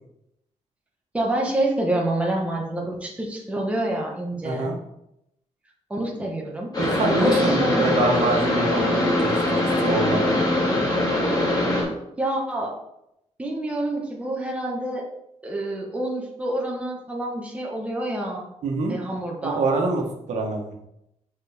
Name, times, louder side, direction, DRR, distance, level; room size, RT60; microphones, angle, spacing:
voice 1, 1.1-4.7 5.9-6.7 7.2-7.9 12.2-12.7 13.4-15.0 15.4-18.5 18.9-19.6, right 1 dB, 10° right, -1 dB, 1.2 m, -27 dB
voice 2, 4.4-4.8 6.8-9.3 9.8-10.4 18.6-19.0 19.4-20.7, right 3 dB, 75° right, 1 dB, 1.2 m, -25 dB
sound 1, 6.7-11.8, left 1 dB, 35° left, 2.4 m, -22 dB
6.7 x 5.0 x 3.5 m, 0.81 s
wide cardioid pair, 145°, 12 cm